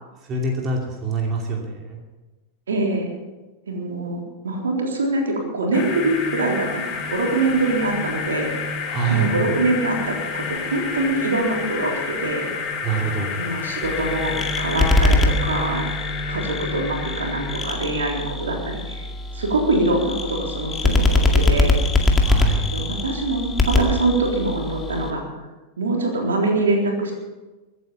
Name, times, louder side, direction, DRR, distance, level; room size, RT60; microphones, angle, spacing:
voice 1, 0.2-2.0 8.9-9.3 12.8-13.4 22.2-22.7, right 4 dB, 30° right, 0 dB, 2.6 m, -25 dB
voice 2, 2.7-3.1 3.7-8.5 9.1-12.5 13.4-15.9 16.3-19.1 19.3-21.8 22.7-25.2 25.8-27.1, right 2 dB, 65° right, 0 dB, 3.8 m, -24 dB
sound 1, 5.7-17.7, left 5 dB, 35° left, 3.4 m, -29 dB
sound 2, 13.8-25.1, left 2 dB, 15° left, 2.1 m, -22 dB
23.5 x 9.5 x 5.7 m, 1.2 s
figure-of-eight pair, 90°, 0 cm